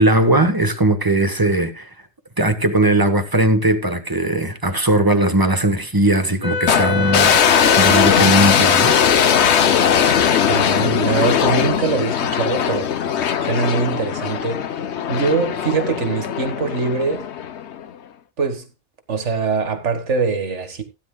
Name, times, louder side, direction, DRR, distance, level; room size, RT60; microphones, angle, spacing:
voice 1, 0.0-1.9 2.4-7.4 7.7-8.9, right 1 dB, 20° right, 1.3 m, -18 dB
Wind instrument woodwind instrument, 6.4-11.0, left 3 dB, 15° left, 2.2 m, -25 dB
sound 1, 6.7-17.9, left 8 dB, 70° left, 1.1 m, -19 dB
voice 2, 10.4-12.9 13.2-14.6 15.1-17.3 18.4-18.7 19.1-20.8, right 4 dB, 80° right, 2.0 m, -23 dB
17.0 x 9.7 x 2.2 m
omnidirectional pair, 1.2 m